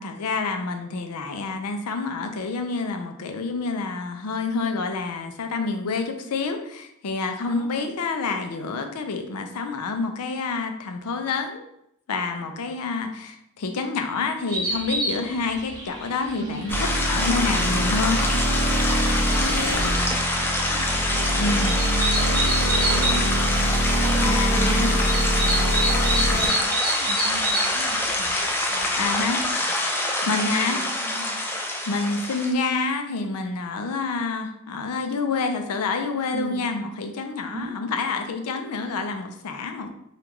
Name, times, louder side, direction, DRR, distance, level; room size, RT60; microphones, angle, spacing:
voice 1, 0.0-11.6 12.1-16.7 17.0-18.2 21.4-21.8 24.2-25.0 27.3-27.6 29.0-29.4 30.3-30.8 31.9-39.9, left 4 dB, 85° left, 6 dB, 0.5 m, -28 dB
voice 2, 7.4-7.9 16.4-16.9 18.3-18.5 19.3-23.9 24.5-29.7 30.2-31.4 36.3-36.7 37.5-37.7, right 4 dB, 65° right, 7 dB, 0.4 m, -39 dB
sound 1, 14.5-29.5, right 1 dB, 20° right, 1.0 m, -30 dB
sound 2, 16.7-26.5, equal, 50° left, 0.6 m, -24 dB
sound 3, 16.7-32.5, left 1 dB, 10° left, 0.3 m, -26 dB
3.6 x 2.3 x 3.0 m, 0.77 s
head